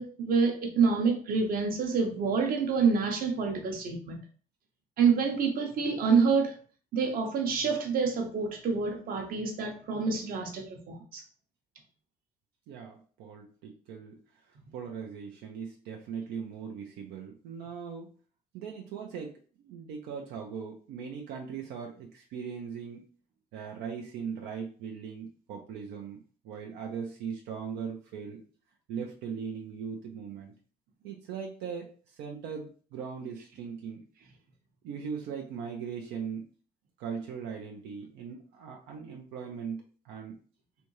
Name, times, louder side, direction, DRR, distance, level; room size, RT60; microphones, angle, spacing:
voice 1, 0.0-4.2 5.0-6.6 6.9-11.2 14.7-14.8, right 5 dB, 60° right, 0.9 m, -27 dB
voice 2, 12.7-14.1 14.7-18.1 18.5-23.0 23.5-26.2 26.4-28.4 28.9-30.5 31.0-34.0 34.8-36.5 37.0-40.3, right 6 dB, 85° right, 0.6 m, -39 dB
3.4 x 2.7 x 3.0 m
cardioid pair, 110°, 17 cm